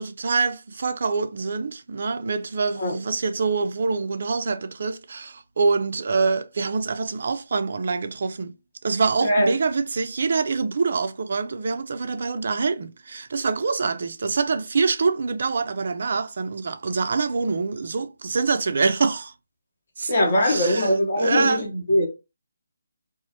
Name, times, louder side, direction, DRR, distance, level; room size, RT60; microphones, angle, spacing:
voice 1, 0.0-8.5 8.8-19.3 20.0-20.1 20.4-21.6, right 4 dB, 55° right, 0.3 m, -25 dB
voice 2, 9.2-9.5 20.1-22.1, left 1 dB, 55° left, 0.8 m, -21 dB
2.4 x 2.0 x 2.6 m
figure-of-eight pair, 155°, 0 cm